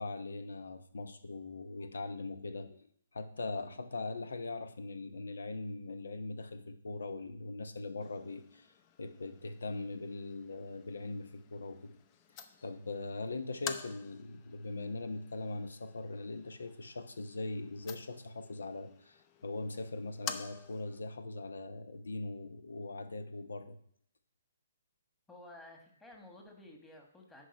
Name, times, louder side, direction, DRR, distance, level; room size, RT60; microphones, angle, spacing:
voice 1, 0.0-8.7 9.0-11.9 12.6-23.8, left 3 dB, 85° left, 10 dB, 0.9 m, -41 dB
sound 1, 8.0-21.0, left 8 dB, 30° left, 0.6 m, -49 dB
voice 2, 25.3-27.5, left 1 dB, 10° left, 1 dB, 1.5 m, -53 dB
10.0 x 4.9 x 5.4 m, 0.65 s
hypercardioid pair, 150°, 0 cm